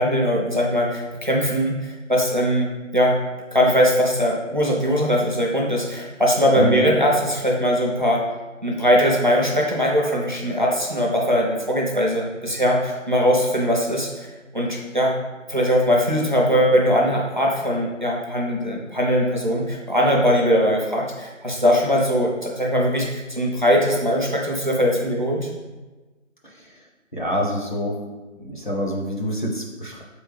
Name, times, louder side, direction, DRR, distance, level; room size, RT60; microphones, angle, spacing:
voice 1, 0.0-3.2 3.5-8.2 8.6-14.3 14.5-15.2 15.5-25.5, equal, 40° right, -2 dB, 0.5 m, -20 dB
voice 2, 27.1-28.0 28.4-30.0, equal, 40° left, -2 dB, 0.5 m, -26 dB
3.8 x 3.5 x 3.1 m, 1.2 s
figure-of-eight pair, 170°, 39 cm